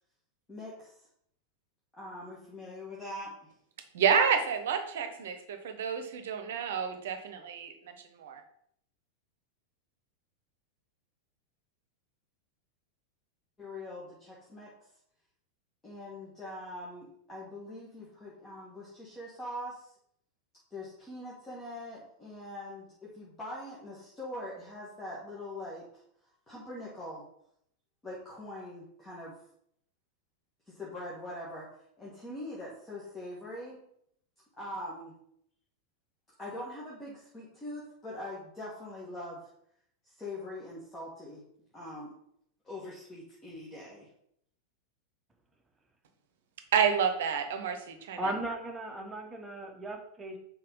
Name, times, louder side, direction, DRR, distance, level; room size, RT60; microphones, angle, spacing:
voice 1, 0.5-1.1 2.0-3.5 13.6-14.7 15.8-19.9 20.7-26.0 26.5-27.2 28.0-29.4 30.7-31.7 32.0-33.8 34.6-35.2 36.4-39.5 40.0-41.4 41.7-42.1 42.6-44.1, left 1 dB, 15° left, -7 dB, 2.1 m, -42 dB
voice 2, 3.9-8.4 46.7-48.2, right 7 dB, 60° right, 7 dB, 1.0 m, -29 dB
voice 3, 48.2-50.4, right 1 dB, 10° right, 2 dB, 1.3 m, -36 dB
5.5 x 4.6 x 5.4 m, 0.70 s
figure-of-eight pair, 90°, 0 cm